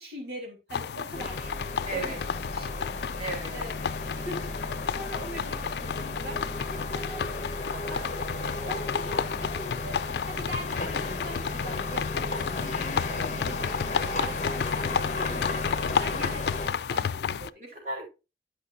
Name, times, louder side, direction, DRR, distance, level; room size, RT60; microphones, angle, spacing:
voice 1, 0.0-1.5 1.9-3.0 3.5-3.8 4.1-7.4 7.9-8.4 8.6-16.6 16.9-17.6, equal, 70° right, 2.9 m, -42 dB
sound 1, 0.7-17.5, left 7 dB, 70° left, 0.3 m, -32 dB
sound 2, 1.1-16.7, left 2 dB, 40° left, 1.1 m, -34 dB
voice 2, 1.8-2.2 3.2-3.5 7.7-8.1 15.1-15.6 17.6-18.1, right 2 dB, 40° right, 3.4 m, -36 dB
11.0 x 5.7 x 2.6 m
head